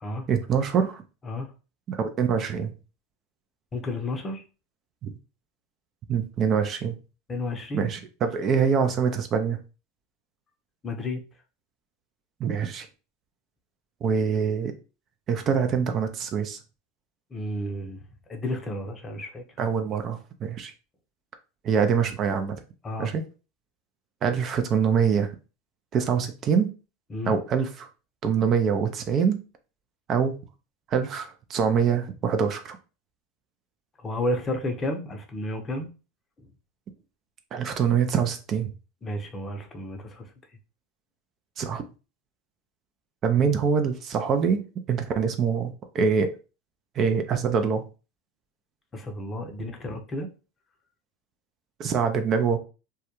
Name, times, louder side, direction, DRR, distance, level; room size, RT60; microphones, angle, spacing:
voice 1, 0.3-1.0 1.9-2.7 5.0-5.1 6.1-7.0 7.7-9.6 12.4-12.9 14.0-14.7 15.3-16.6 19.6-20.7 21.6-22.6 23.0-23.2 24.2-25.3 25.9-26.7 27.3-27.9 28.2-29.4 30.1-30.4 30.9-32.8 37.5-38.7 41.6-41.8 43.2-44.6 44.9-46.3 47.0-47.8 51.8-52.6, right 6 dB, 40° right, 7 dB, 0.4 m, -24 dB
voice 2, 3.7-4.4 7.3-7.9 10.8-11.2 17.3-18.0 18.3-19.4 22.8-23.1 27.1-27.4 34.0-35.9 36.4-36.5 39.0-40.3 48.9-50.3, left 1 dB, 25° left, 4 dB, 0.6 m, -32 dB
2.2 x 2.1 x 2.9 m, 0.33 s
hypercardioid pair, 95°, 0 cm